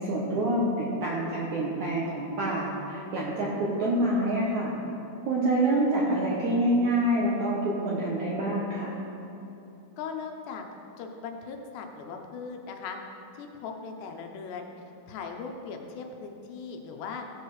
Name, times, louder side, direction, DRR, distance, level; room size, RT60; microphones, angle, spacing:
voice 1, 0.0-4.7 5.3-8.9, right 1 dB, 70° right, -5 dB, 1.8 m, -27 dB
voice 2, 10.0-10.7 11.0-13.0 13.3-14.7 15.1-17.3, left 5 dB, 80° left, 3 dB, 2.9 m, -39 dB
16.5 x 6.6 x 4.8 m, 2.9 s
omnidirectional pair, 5.0 m